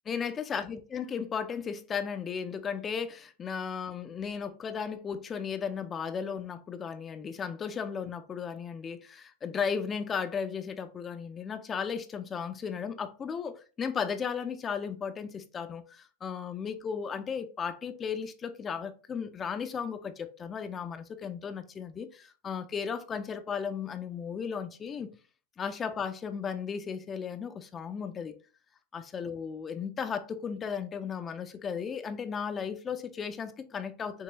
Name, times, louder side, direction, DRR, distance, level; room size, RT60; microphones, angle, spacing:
voice 1, 0.1-25.1 25.6-28.4 28.9-34.2, left 6 dB, 20° left, 0.4 m, -35 dB
6.3 x 2.9 x 2.9 m
figure-of-eight pair, 90°, 0 cm